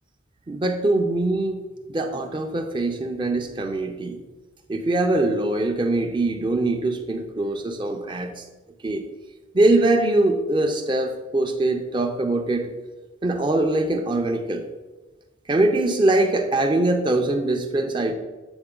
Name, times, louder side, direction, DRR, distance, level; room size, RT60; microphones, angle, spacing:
voice 1, 0.5-4.2 4.7-8.4 8.8-9.0 9.5-12.7 13.2-14.7 15.5-18.1, right 2 dB, 25° right, 5 dB, 0.4 m, -22 dB
7.9 x 4.0 x 3.7 m, 1.2 s
head